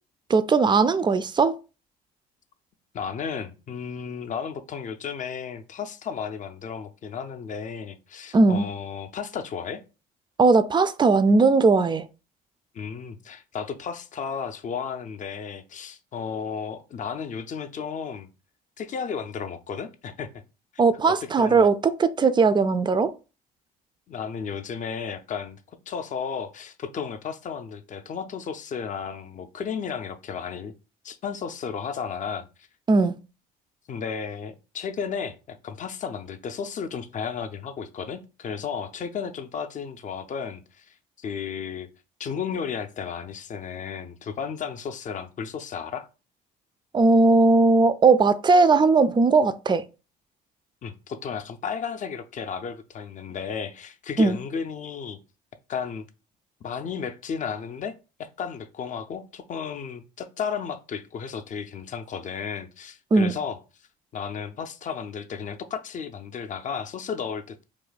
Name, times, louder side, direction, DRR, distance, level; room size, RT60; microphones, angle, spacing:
voice 1, 0.3-1.5 8.3-8.6 10.4-12.1 20.8-23.1 32.9-33.2 46.9-49.8 54.2-54.4 63.1-63.3, right 3 dB, 25° right, 0.3 m, -19 dB
voice 2, 2.9-9.8 12.7-18.3 18.8-20.3 21.1-21.7 24.1-25.6 25.9-30.7 31.0-32.7 33.9-41.9 42.2-46.1 50.8-55.2 55.7-56.0 56.6-57.9 58.2-63.6 64.1-67.6, left 6 dB, 40° left, 0.5 m, -33 dB
2.4 x 2.2 x 3.9 m
supercardioid pair, 70°, 19 cm